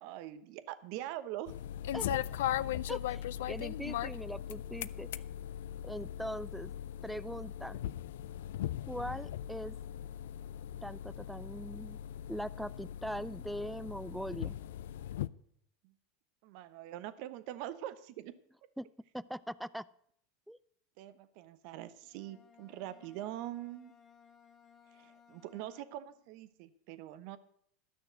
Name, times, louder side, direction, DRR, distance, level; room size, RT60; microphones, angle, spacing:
voice 1, 0.0-1.5 15.8-15.9 16.4-18.3 21.0-23.9 24.9-27.4, right 13 dB, 60° right, 13 dB, 0.9 m, -43 dB
sound 1, 1.5-15.3, left 11 dB, 75° left, 0.4 m, -39 dB
voice 2, 2.9-5.2 5.8-6.7 7.0-7.8 8.9-9.7 10.8-12.0 12.3-14.6 18.8-18.9 19.1-19.9 20.5-20.6, equal, ahead, 17 dB, 0.4 m, -41 dB
Bowed string instrument, 22.0-26.3, left 7 dB, 35° left, 2.1 m, -62 dB
12.5 x 6.4 x 7.8 m, 0.69 s
hypercardioid pair, 95°, 0 cm